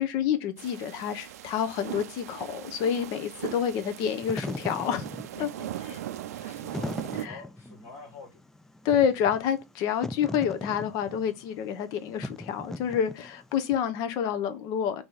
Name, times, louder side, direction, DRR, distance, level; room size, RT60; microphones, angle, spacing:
voice 1, 0.0-5.1 5.4-5.5 7.2-7.4 8.8-15.0, left 8 dB, 50° left, 0.8 m, -28 dB
sound 1, 0.6-7.3, right 12 dB, 75° right, 0.4 m, -39 dB
Wind / Fire, 4.0-13.6, left 1 dB, 5° left, 0.3 m, -39 dB
voice 2, 5.3-8.4, left 4 dB, 75° left, 2.6 m, -47 dB
3.9 x 3.0 x 3.9 m
hypercardioid pair, 100°, 8 cm